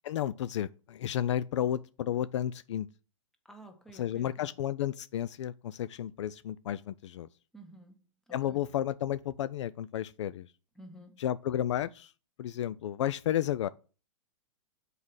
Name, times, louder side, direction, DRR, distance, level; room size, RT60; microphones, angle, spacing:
voice 1, 0.0-2.9 3.9-7.3 8.3-10.5 11.2-12.1 12.4-13.7, left 11 dB, 60° left, 0.5 m, -32 dB
voice 2, 3.4-4.5 7.5-8.6 10.7-11.2, right 1 dB, 5° left, 1.6 m, -52 dB
7.3 x 4.9 x 6.3 m
hypercardioid pair, 115°, 17 cm